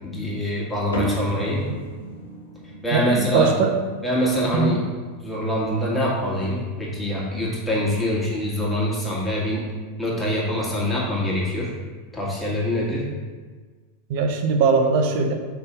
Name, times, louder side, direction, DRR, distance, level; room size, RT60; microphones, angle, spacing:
voice 1, 0.0-1.7 2.8-3.5 4.0-4.8 5.1-9.7 10.0-11.7 12.1-13.1, left 1 dB, 5° left, -6 dB, 1.8 m, -24 dB
sound 1, 0.9-7.6, equal, 75° left, 1.0 m, -36 dB
voice 2, 2.9-3.8 4.5-4.7 14.1-15.3, right 5 dB, 50° right, 5 dB, 0.7 m, -20 dB
5.5 x 3.5 x 5.5 m, 1.4 s
figure-of-eight pair, 90°, 0 cm